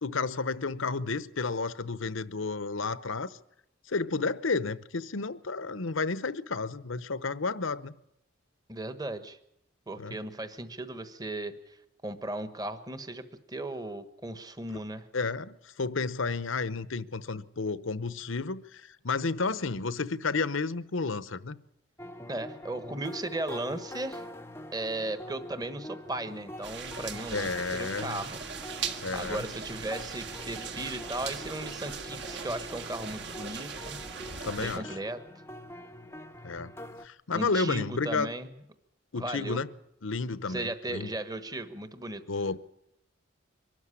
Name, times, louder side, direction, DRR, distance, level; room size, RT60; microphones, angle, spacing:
voice 1, 0.0-3.4 3.9-7.9 10.0-10.2 14.7-14.8 15.1-21.6 27.3-28.2 29.0-29.5 34.4-35.0 36.4-36.7 37.0-38.3 39.1-39.7 40.0-41.1 42.3-42.6, left 4 dB, 75° left, 0.9 m, -31 dB
voice 2, 8.7-9.4 9.9-11.8 12.0-15.1 22.3-24.2 24.7-28.4 29.1-34.0 34.6-35.2 37.3-38.5 39.2-39.6 40.5-42.2, right 2 dB, 20° right, 1.3 m, -36 dB
sound 1, 22.0-37.1, left 1 dB, 10° left, 0.8 m, -45 dB
sound 2, 26.6-34.8, right 5 dB, 55° right, 1.8 m, -39 dB
23.5 x 13.0 x 9.8 m
head